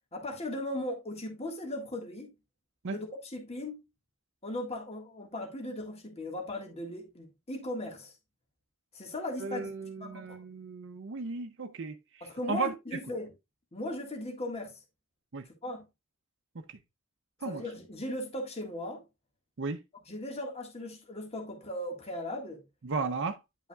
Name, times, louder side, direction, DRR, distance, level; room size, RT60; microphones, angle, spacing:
voice 1, 0.1-2.3 2.9-3.8 4.4-8.1 8.9-10.4 12.2-13.3 13.7-14.8 15.4-15.8 17.4-19.0 20.1-22.6, left 1 dB, 30° left, 1.7 m, -38 dB
voice 2, 9.4-13.0 15.3-15.5 16.5-16.8 17.4-17.6 19.6-19.8 22.8-23.4, right 4 dB, 60° right, 0.6 m, -35 dB
10.0 x 5.7 x 2.3 m
head